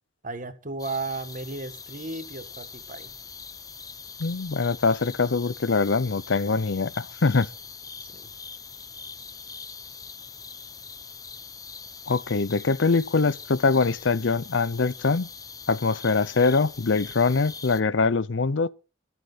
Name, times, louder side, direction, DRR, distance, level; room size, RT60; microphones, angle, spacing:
voice 1, 0.2-3.1 8.1-8.3, right 3 dB, 45° right, 1.7 m, -34 dB
sound 1, 0.8-17.8, left 5 dB, 20° left, 0.8 m, -42 dB
voice 2, 4.2-7.5 12.1-15.3 15.7-18.7, left 4 dB, 70° left, 0.6 m, -23 dB
22.0 x 8.1 x 4.1 m
head